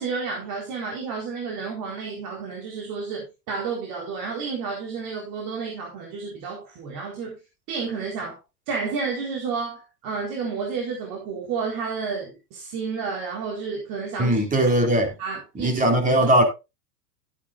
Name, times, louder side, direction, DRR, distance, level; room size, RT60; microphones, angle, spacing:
voice 1, 0.0-7.4 7.7-8.4 8.7-14.4 15.2-15.8 16.2-16.3, right 5 dB, 45° right, 4.2 m, -31 dB
voice 2, 14.2-15.1 15.6-16.4, right 1 dB, 15° right, 3.6 m, -19 dB
13.5 x 9.5 x 2.5 m
hypercardioid pair, 120°, 48 cm